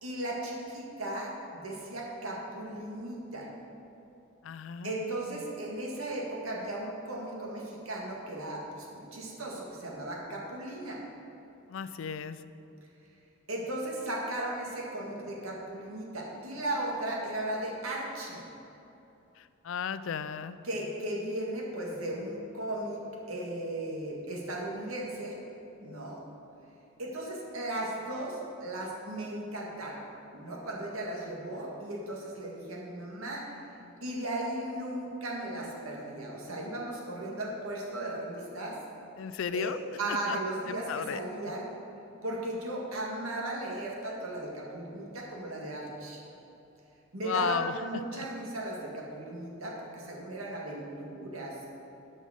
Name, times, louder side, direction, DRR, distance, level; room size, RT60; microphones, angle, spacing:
voice 1, 0.0-3.5 4.8-11.0 13.5-18.4 20.6-23.0 23.3-25.4 25.8-26.2 27.0-30.0 30.3-33.4 34.0-38.8 39.5-39.7 40.0-41.7 42.2-46.2 47.1-51.7, right 1 dB, 90° right, -3 dB, 2.0 m, -36 dB
voice 2, 4.4-5.4 11.7-12.4 19.4-20.6 39.2-39.8 40.1-40.4 40.7-41.2 47.2-48.3, left 7 dB, 70° left, 13 dB, 0.4 m, -35 dB
11.0 x 5.5 x 6.4 m, 2.9 s
head